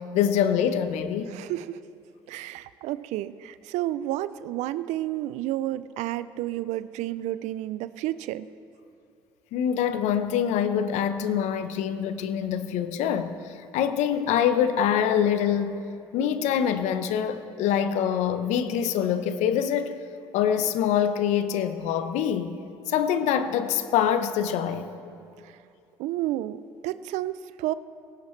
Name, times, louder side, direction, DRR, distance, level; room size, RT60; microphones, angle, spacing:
voice 1, 0.0-1.3 9.5-15.8 16.1-19.9 20.3-22.6 22.9-24.9, left 9 dB, 70° left, 10 dB, 0.9 m, -25 dB
voice 2, 1.3-1.8 2.3-8.5 26.0-27.7, right 14 dB, 70° right, 16 dB, 0.5 m, -31 dB
20.0 x 17.5 x 3.3 m, 2.5 s
hypercardioid pair, 60°, 12 cm